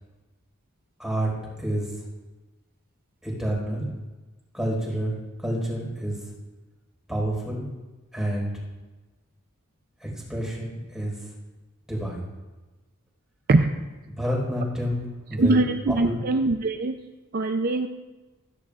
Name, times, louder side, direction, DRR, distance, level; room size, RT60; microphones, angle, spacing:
voice 1, 1.0-1.3 1.6-2.1 3.2-3.9 4.5-6.3 7.1-7.6 8.1-8.5 10.0-11.3 11.9-12.2 14.0-15.6 16.0-16.2, equal, ahead, -3 dB, 4.8 m, -29 dB
voice 2, 15.4-17.0 17.3-17.9, right 2 dB, 45° right, 6 dB, 0.5 m, -22 dB
16.0 x 15.0 x 2.5 m, 1.2 s
head